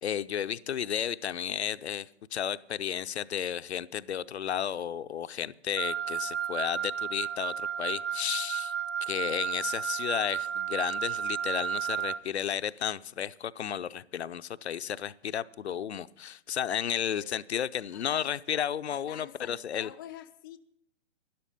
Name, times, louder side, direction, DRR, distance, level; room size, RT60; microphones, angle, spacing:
voice 1, 0.0-8.7 9.0-19.9, left 9 dB, 65° left, 0.6 m, -33 dB
Wind instrument woodwind instrument, 5.8-12.2, right 8 dB, 75° right, 0.7 m, -33 dB
voice 2, 17.1-17.5 17.9-18.4 18.9-20.6, left 11 dB, 20° left, 0.4 m, -47 dB
12.0 x 11.0 x 5.5 m
figure-of-eight pair, 120°, 36 cm